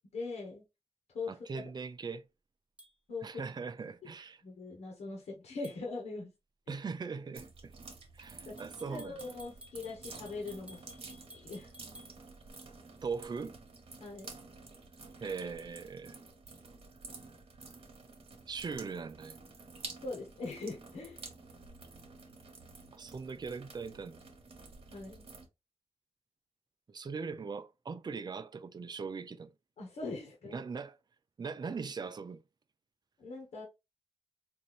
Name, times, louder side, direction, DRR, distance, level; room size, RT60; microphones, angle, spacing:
voice 1, 0.1-0.6 1.1-1.6 3.1-3.4 4.4-6.3 6.7-6.8 8.4-8.5 8.9-10.8 11.3-11.7 14.0-14.3 20.0-21.2 24.9-25.2 29.8-30.6 33.2-33.6, left 3 dB, 90° left, 1.1 m, -41 dB
voice 2, 1.3-2.2 3.2-4.4 6.7-7.7 8.1-9.2 13.0-13.6 15.2-16.2 18.5-19.4 22.9-24.2 26.9-29.5 30.5-31.0 31.4-32.4, right 5 dB, 40° right, 0.5 m, -40 dB
sound 1, 2.8-2.9 5.6-5.8 8.6-12.1, equal, 10° right, 1.2 m, -54 dB
sound 2, 7.3-25.5, right 3 dB, 60° right, 1.2 m, -51 dB
4.1 x 2.7 x 3.1 m
wide cardioid pair, 90°, 11 cm